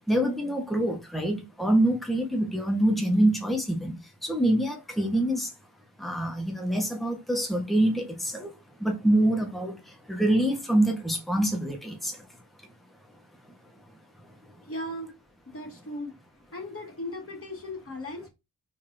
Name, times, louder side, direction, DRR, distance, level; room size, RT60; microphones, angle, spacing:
voice 1, 0.1-5.5 6.0-8.5 8.8-9.7 10.1-12.1, right 1 dB, ahead, 1.5 m, -25 dB
voice 2, 14.6-15.1 15.5-16.1 16.5-18.3, left 1 dB, 35° left, 2.4 m, -37 dB
4.7 x 3.7 x 2.8 m
cardioid pair, 50°, 38 cm